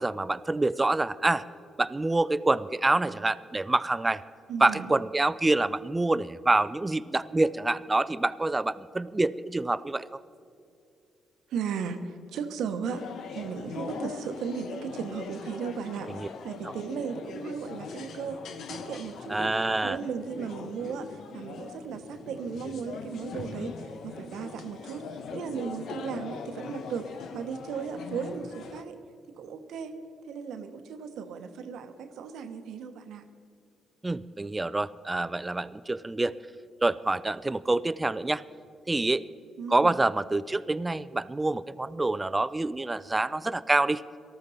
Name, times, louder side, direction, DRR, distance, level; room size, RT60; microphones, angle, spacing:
voice 1, 0.0-1.4 1.8-4.2 4.6-10.1 16.1-16.3 19.3-20.0 34.0-36.4 36.8-38.4 38.9-39.2 39.7-44.0, right 2 dB, 20° right, 17 dB, 0.5 m, -26 dB
voice 2, 4.5-4.9 11.5-13.0 13.3-18.4 18.7-19.5 19.8-23.8 24.0-25.1 25.3-27.1 27.3-29.0 29.3-30.0 30.3-33.2 39.6-39.9, right 6 dB, 75° right, 8 dB, 1.0 m, -36 dB
sound 1, 12.8-28.8, left 5 dB, 70° left, 0.9 m, -41 dB
18.5 x 13.5 x 4.1 m, 2.5 s
supercardioid pair, 60°, 0 cm